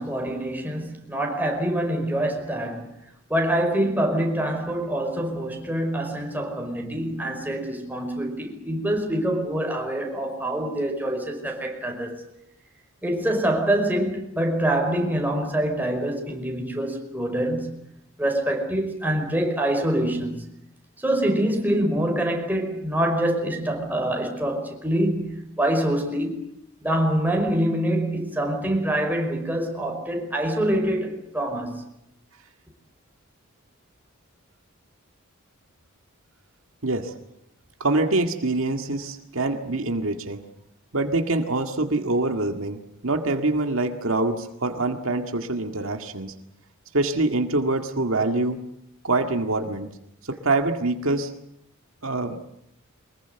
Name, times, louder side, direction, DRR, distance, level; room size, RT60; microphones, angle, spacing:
voice 1, 0.0-2.9 3.3-12.2 13.0-17.8 18.2-20.5 21.0-26.4 26.8-31.8, right 1 dB, 10° right, 5.2 m, -25 dB
voice 2, 36.8-37.2 37.8-40.4 40.9-42.8 43.0-46.3 46.9-48.6 49.0-49.9 50.2-51.3 52.0-52.4, right 2 dB, 70° right, 2.0 m, -25 dB
24.5 x 21.5 x 8.1 m
head